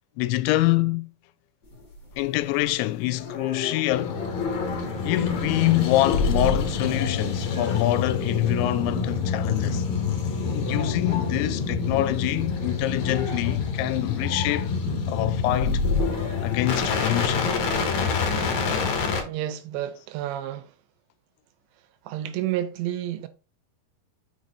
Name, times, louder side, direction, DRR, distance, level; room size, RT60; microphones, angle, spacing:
voice 1, 0.2-1.1 2.2-4.2 5.1-9.9 10.5-14.7 15.1-15.8 16.4-17.5, left 17 dB, 90° left, 2.9 m, -25 dB
sound 1, 1.6-2.7 3.1-4.6 4.8-17.5 17.9-18.1, left 3 dB, 40° left, 1.5 m, -39 dB
sound 2, 3.9-19.2, left 4 dB, 65° left, 1.9 m, -27 dB
voice 2, 19.3-20.7 22.1-23.3, right 12 dB, 80° right, 2.8 m, -30 dB
6.2 x 4.8 x 4.2 m
omnidirectional pair, 5.2 m